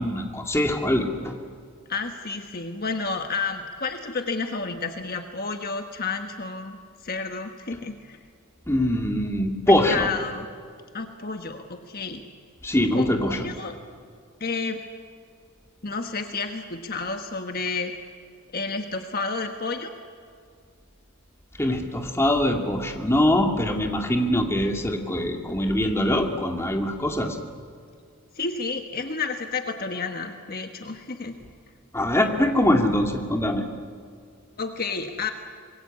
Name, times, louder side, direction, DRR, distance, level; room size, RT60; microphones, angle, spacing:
voice 1, 0.0-1.3 8.7-10.1 12.6-13.5 21.6-27.4 31.9-33.6, left 1 dB, 10° left, 3 dB, 2.3 m, -23 dB
voice 2, 1.9-6.8 7.0-8.2 9.7-10.5 10.9-12.2 12.9-13.8 14.4-14.8 15.8-17.9 18.5-19.9 28.3-31.3 34.6-35.3, left 4 dB, 45° left, 5 dB, 1.4 m, -31 dB
26.0 x 21.5 x 8.5 m, 2.1 s
head